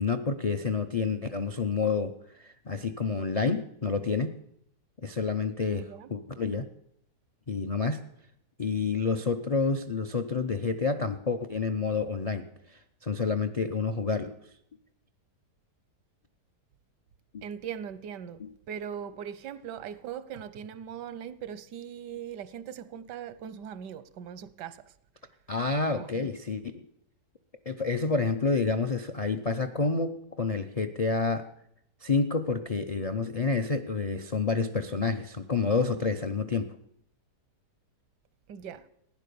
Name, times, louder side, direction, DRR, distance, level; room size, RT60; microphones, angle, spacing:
voice 1, 0.0-2.2 2.7-4.3 5.0-6.7 7.5-8.0 8.6-12.5 13.0-14.4 17.3-17.4 18.4-18.5 25.5-26.8 27.7-31.5 32.0-36.8, left 4 dB, 65° left, 0.3 m, -29 dB
voice 2, 5.7-6.1 17.4-18.4 18.7-24.9 26.0-26.3 38.5-38.9, right 8 dB, 90° right, 1.4 m, -40 dB
15.5 x 10.0 x 6.8 m
omnidirectional pair, 1.8 m